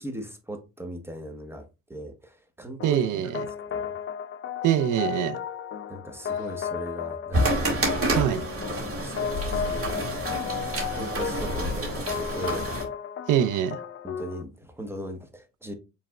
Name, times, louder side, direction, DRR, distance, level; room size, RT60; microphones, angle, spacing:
voice 1, 0.0-3.1 3.7-3.9 5.9-8.2 8.7-10.1 10.9-12.7 14.0-15.7, right 1 dB, 10° right, 1.0 m, -39 dB
sound 1, 2.8-14.4, left 8 dB, 45° left, 0.5 m, -34 dB
voice 2, 2.8-3.4 4.6-5.4 8.1-8.4 13.3-13.8, right 10 dB, 85° right, 0.6 m, -24 dB
sound 2, 7.3-12.8, right 1 dB, 45° right, 1.9 m, -28 dB
5.3 x 3.4 x 2.4 m
cardioid pair, 90°, 30 cm